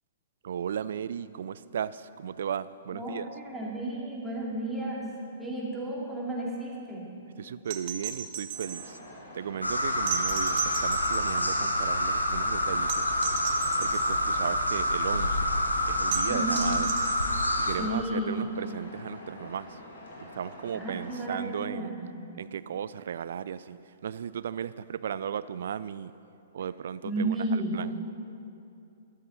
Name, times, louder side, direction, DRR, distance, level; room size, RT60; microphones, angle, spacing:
voice 1, 0.4-3.3 7.4-9.0 9.3-13.1 13.8-15.5 15.9-16.9 17.6-19.8 20.2-21.9 22.4-26.1 26.5-27.9, right 8 dB, 55° right, 17 dB, 0.3 m, -36 dB
voice 2, 2.9-5.0 5.4-7.1 16.3-16.7 17.8-18.4 20.7-22.2 27.0-27.9, right 1 dB, 5° right, -5 dB, 2.6 m, -32 dB
sound 1, 7.7-8.9 10.1-11.6 12.9-14.2 16.1-17.6 19.4-19.5, right 9 dB, 40° right, 0.9 m, -36 dB
sound 2, 8.5-21.3, left 1 dB, 70° left, 2.8 m, -46 dB
sound 3, 9.6-17.8, left 1 dB, 85° left, 1.0 m, -27 dB
13.5 x 12.5 x 4.0 m, 2.6 s
figure-of-eight pair, 110°, 0 cm